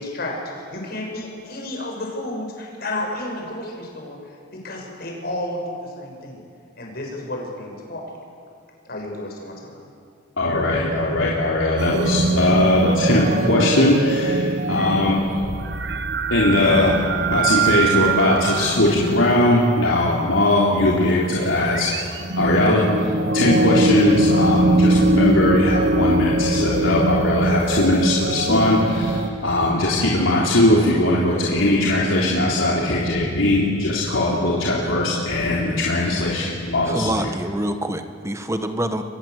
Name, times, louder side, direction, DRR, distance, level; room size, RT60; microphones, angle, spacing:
voice 1, 0.0-4.2 4.5-6.4 6.8-8.0 8.9-9.7, left 1 dB, 50° left, 0 dB, 7.0 m, -31 dB
voice 2, 10.4-15.5 16.3-16.9 17.3-22.0 22.4-23.1 23.3-37.2, left 1 dB, 80° left, -5 dB, 3.8 m, -19 dB
sound 1, 11.8-20.5 21.5-29.3, right 2 dB, 60° right, 1.2 m, -22 dB
voice 3, 36.9-39.0, right 1 dB, 15° right, 7 dB, 1.5 m, -26 dB
30.0 x 23.0 x 8.3 m, 2.3 s
head